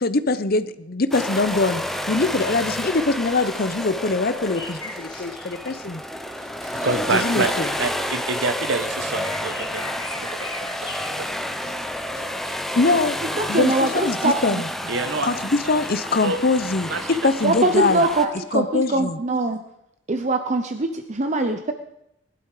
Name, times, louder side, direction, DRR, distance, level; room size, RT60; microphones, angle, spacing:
voice 1, 0.0-1.8 2.1-6.0 7.1-7.7 12.2-13.2 13.5-14.7 15.2-16.9 17.2-18.0 18.5-19.2, left 3 dB, 50° left, 13 dB, 0.8 m, -23 dB
sound 1, 1.1-18.3, equal, ahead, 0.9 m, -30 dB
sound 2, 4.5-5.7 6.3-7.7 8.0-8.2 8.7-8.8 9.2-11.1, left 2 dB, 25° left, 2.6 m, -39 dB
voice 2, 6.6-7.5 7.8-11.3 14.8-15.3 16.2-16.4 16.9-17.3, right 3 dB, 75° right, 10 dB, 1.1 m, -27 dB
voice 3, 13.4-14.6 17.4-19.6 20.1-21.7, right 2 dB, 40° right, 7 dB, 0.8 m, -22 dB
20.0 x 11.5 x 4.9 m, 0.83 s
head